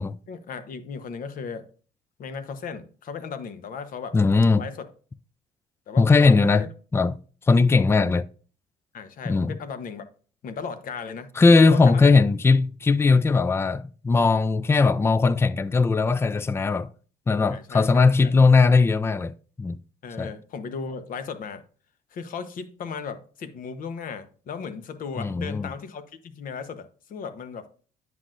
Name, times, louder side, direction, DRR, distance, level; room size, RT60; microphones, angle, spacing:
voice 1, 0.3-1.7 2.2-4.2 4.6-4.9 5.9-6.7 8.9-10.0 10.4-11.3 11.7-12.1 17.5-18.3 20.0-21.6 22.1-27.7, left 5 dB, 55° left, 1.0 m, -36 dB
voice 2, 4.1-4.6 6.0-6.7 6.9-7.2 7.5-8.3 9.3-9.5 11.4-16.9 17.3-19.3 19.6-19.8 20.2-20.3 25.2-25.7, left 4 dB, 15° left, 0.4 m, -19 dB
9.5 x 6.1 x 2.6 m
cardioid pair, 110°, 17 cm